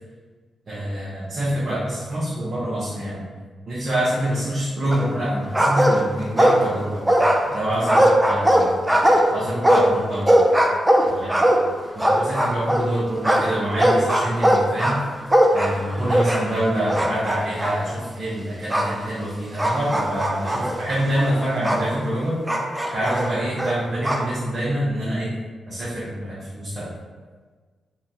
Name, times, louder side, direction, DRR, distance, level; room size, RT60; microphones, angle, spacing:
voice 1, 0.7-3.2 3.7-7.0 7.5-8.8 9.3-10.4 11.1-11.4 11.9-15.0 15.5-22.4 22.9-25.3 25.7-26.9, right 1 dB, 55° right, -9 dB, 0.8 m, -26 dB
sound 1, 4.9-5.3 5.5-6.8 7.1-12.9 13.2-16.6 16.9-17.8 18.7-18.9 19.6-21.9 22.5-24.3, equal, 15° right, 0.4 m, -19 dB
2.8 x 2.2 x 2.6 m, 1.4 s
cardioid pair, 60°, 0 cm